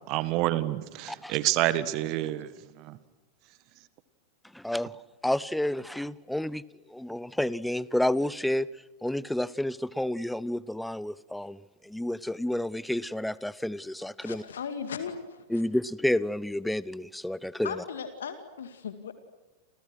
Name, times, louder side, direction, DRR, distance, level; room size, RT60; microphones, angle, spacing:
voice 1, 0.1-2.5 2.8-3.0, right 15 dB, 40° right, 15 dB, 1.7 m, -28 dB
voice 2, 4.5-4.9 5.2-6.6 6.9-8.7 9.0-14.4 15.5-17.7, left 1 dB, 5° left, 21 dB, 0.8 m, -30 dB
voice 3, 14.2-15.6 17.6-19.1, left 7 dB, 65° left, 9 dB, 2.3 m, -37 dB
29.5 x 29.0 x 6.3 m, 1.1 s
figure-of-eight pair, 90°, 0 cm